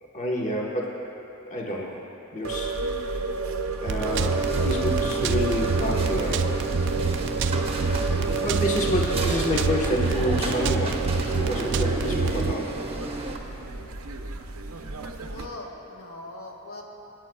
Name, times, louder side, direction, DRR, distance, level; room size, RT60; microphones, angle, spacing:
voice 1, 0.1-1.0 1.5-2.0 2.3-2.7 3.8-6.5 8.4-12.7, left 1 dB, 35° left, -2 dB, 1.2 m, -29 dB
sound 1, 2.4-15.5, right 4 dB, 85° right, 0.7 m, -31 dB
sound 2, 3.9-12.5, right 4 dB, 60° right, 0.4 m, -27 dB
sound 3, 4.0-13.4, right 1 dB, 30° right, 1.0 m, -33 dB
voice 2, 15.3-16.8, left 2 dB, 80° left, -1 dB, 1.8 m, -40 dB
27.0 x 9.2 x 2.3 m, 2.9 s
head